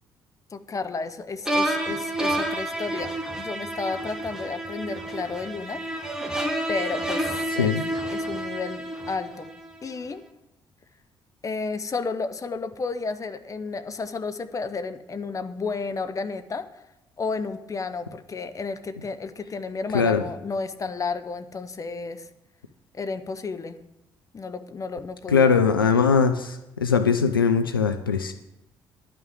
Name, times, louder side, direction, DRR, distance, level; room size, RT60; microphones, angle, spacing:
voice 1, 0.5-5.8 6.7-7.3 7.5-7.7 8.1-9.5 9.8-10.2 11.4-16.7 17.2-22.3 22.9-23.8 24.3-25.5, left 4 dB, 30° left, 10 dB, 0.9 m, -32 dB
sound 1, 1.5-9.7, right 1 dB, 5° right, 1.6 m, -29 dB
voice 2, 25.3-28.3, left 5 dB, 85° left, 8 dB, 0.4 m, -21 dB
11.0 x 5.7 x 8.7 m, 0.91 s
figure-of-eight pair, 45°, 11 cm